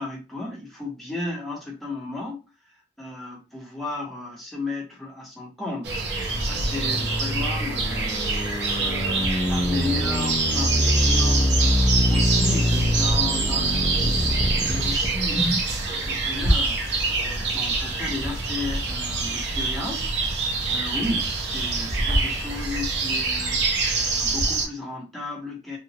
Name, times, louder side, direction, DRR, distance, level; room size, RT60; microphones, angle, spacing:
voice 1, 0.0-23.6 24.0-25.8, left 2 dB, ahead, -4 dB, 1.0 m, -34 dB
sound 1, 5.8-24.7, right 3 dB, 80° right, 0.8 m, -25 dB
sound 2, 6.3-15.1, left 1 dB, 20° left, 0.6 m, -24 dB
2.9 x 2.4 x 2.9 m, 0.29 s
head